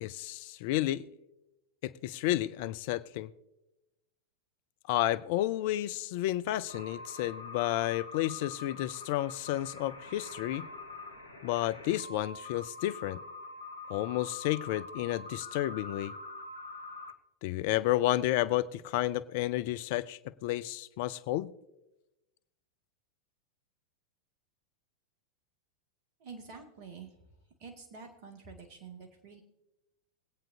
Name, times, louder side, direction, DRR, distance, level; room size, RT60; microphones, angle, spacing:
voice 1, 0.0-1.0 1.8-3.3 4.9-10.7 11.4-13.2 13.9-16.1 17.4-21.5, left 15 dB, 50° left, 15 dB, 0.4 m, -31 dB
sound 1, 6.7-17.1, left 3 dB, 80° left, 1.0 m, -45 dB
voice 2, 26.2-27.2 27.6-29.4, right 5 dB, 45° right, 2 dB, 2.2 m, -48 dB
22.5 x 8.8 x 2.8 m, 0.95 s
figure-of-eight pair, 90°, 0 cm